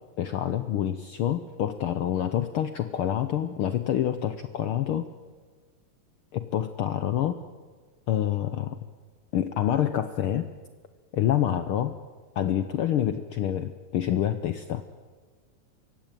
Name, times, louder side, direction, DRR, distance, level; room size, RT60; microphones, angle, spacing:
voice 1, 0.2-5.1 6.3-7.4 8.1-8.8 9.3-10.5 11.1-12.0 12.4-14.8, left 11 dB, 75° left, 10 dB, 1.2 m, -27 dB
24.0 x 16.0 x 9.0 m, 1.5 s
omnidirectional pair, 3.4 m